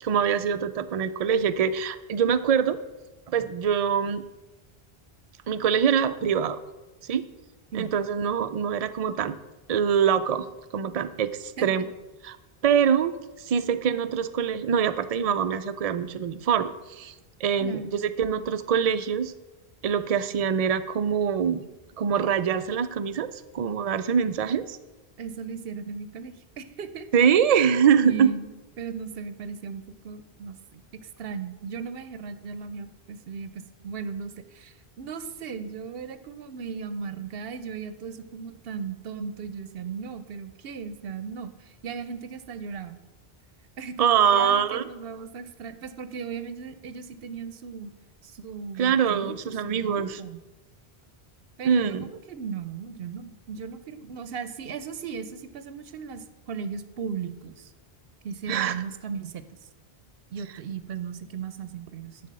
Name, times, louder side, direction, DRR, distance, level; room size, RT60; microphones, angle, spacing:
voice 1, 0.0-2.8 3.3-4.2 5.5-6.6 7.0-7.3 7.7-9.4 9.7-10.5 10.7-11.8 12.2-12.4 12.6-13.1 13.5-17.1 17.4-19.3 19.8-21.6 22.0-23.3 23.5-24.8 27.1-28.3 44.0-44.8 48.8-50.2 51.6-52.1 58.5-58.8, right 7 dB, 50° right, 11 dB, 0.5 m, -24 dB
voice 2, 17.6-18.0 25.2-27.1 28.0-28.5 28.8-43.0 43.8-47.9 48.2-50.4 51.6-57.7 58.2-59.7 60.3-62.2, right 6 dB, 70° right, 12 dB, 0.8 m, -37 dB
10.5 x 4.2 x 7.5 m, 1.1 s
omnidirectional pair, 1.0 m